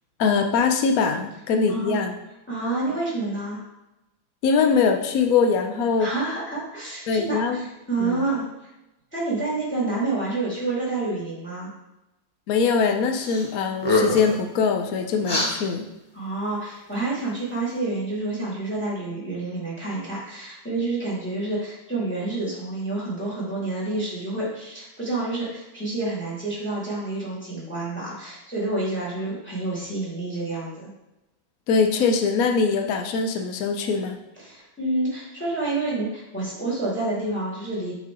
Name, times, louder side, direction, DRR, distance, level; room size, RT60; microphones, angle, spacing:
voice 1, 0.2-2.1 4.4-6.1 7.1-7.6 8.0-8.2 12.5-15.8 31.7-34.2, left 5 dB, 65° left, 5 dB, 0.9 m, -22 dB
voice 2, 1.7-2.0 2.5-3.6 6.0-8.7 9.1-11.7 16.1-30.9 34.4-37.9, right 2 dB, 5° left, -6 dB, 2.3 m, -28 dB
sound 1, 13.2-13.5 13.8-14.4 15.2-15.5, left 2 dB, 30° left, 0.4 m, -23 dB
8.3 x 4.7 x 3.8 m, 0.96 s
omnidirectional pair, 2.4 m